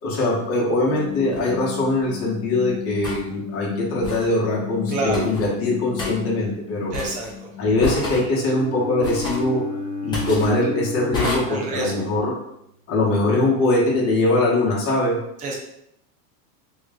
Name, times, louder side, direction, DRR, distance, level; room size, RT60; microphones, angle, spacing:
voice 1, 0.0-6.9 7.6-9.6 10.0-12.4 12.9-15.2, left 2 dB, 30° left, -5 dB, 1.2 m, -22 dB
sound 1, 0.5-8.3, left 8 dB, 55° left, 0.9 m, -35 dB
sound 2, 1.3-1.5 3.0-3.2 4.0-4.3 5.1-5.5 6.0-6.1 6.9-7.3 7.8-8.2 9.0-9.5 10.1-10.5 11.1-11.4, left 3 dB, 10° left, 0.9 m, -29 dB
voice 2, 4.9-5.3 6.9-7.5 11.5-12.1 15.4-15.5, right 2 dB, 15° right, -1 dB, 0.5 m, -28 dB
Bowed string instrument, 8.2-12.3, left 3 dB, 60° right, 1.1 m, -33 dB
3.1 x 3.1 x 3.7 m, 0.77 s
supercardioid pair, 160°, 47 cm